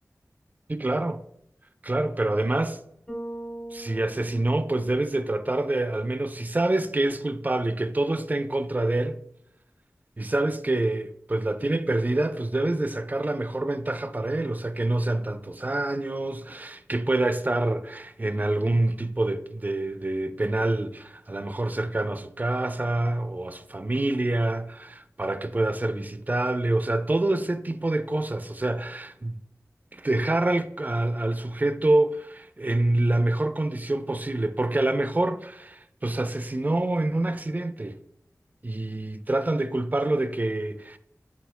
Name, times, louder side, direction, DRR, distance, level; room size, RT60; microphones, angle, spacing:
voice 1, 0.7-1.2 1.8-2.8 3.7-9.2 10.2-29.4 29.9-38.0 38.6-41.0, right 2 dB, 30° right, 0.4 m, -26 dB
Bass guitar, 3.1-5.4, right 1 dB, 15° left, 1.3 m, -40 dB
4.2 x 4.0 x 2.2 m
wide cardioid pair, 50°, 6 cm